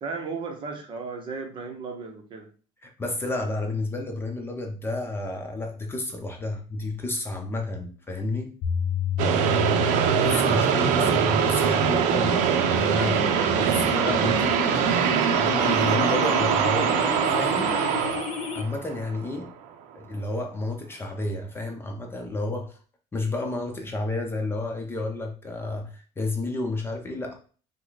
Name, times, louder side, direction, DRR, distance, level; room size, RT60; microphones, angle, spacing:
voice 1, 0.0-2.5 11.0-11.2, right 4 dB, 40° right, 1.0 m, -35 dB
voice 2, 2.8-8.6 10.1-12.4 12.8-13.3 13.6-14.7 15.4-17.8 18.5-19.5 19.9-22.8 23.1-27.3, left 2 dB, 20° left, 0.8 m, -31 dB
sound 1, 8.6-18.6, left 6 dB, 65° left, 0.7 m, -31 dB
sound 2, 9.2-19.4, right 8 dB, 75° right, 0.5 m, -23 dB
5.6 x 2.2 x 3.9 m
cardioid pair, 135°, 13 cm